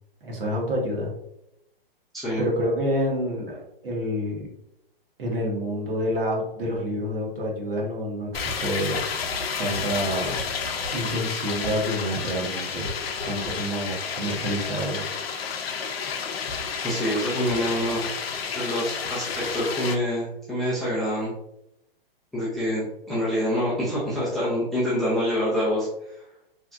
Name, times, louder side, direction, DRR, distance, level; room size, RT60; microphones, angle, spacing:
voice 1, 0.2-1.1 2.4-4.5 5.2-9.0 9.6-10.4 10.9-12.9 13.2-15.1, equal, 70° right, -2 dB, 1.2 m, -28 dB
voice 2, 2.1-2.5 16.8-18.0 18.5-21.3 22.3-22.8 23.1-26.2, equal, ahead, -11 dB, 0.4 m, -26 dB
sound 1, 8.3-19.9, left 5 dB, 80° left, 0.6 m, -31 dB
3.2 x 2.6 x 2.4 m, 0.82 s
hypercardioid pair, 145°, 30 cm